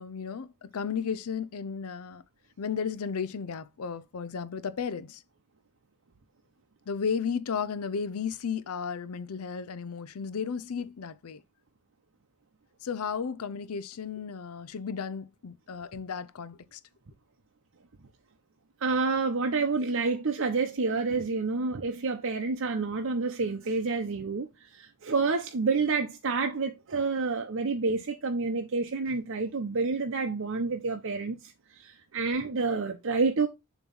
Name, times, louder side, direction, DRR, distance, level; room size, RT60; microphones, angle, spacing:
voice 1, 0.0-2.2 2.6-5.2 6.9-11.4 12.8-16.8, left 6 dB, 90° left, 0.5 m, -34 dB
voice 2, 18.8-33.5, right 4 dB, 65° right, 0.7 m, -29 dB
7.2 x 3.0 x 5.4 m
head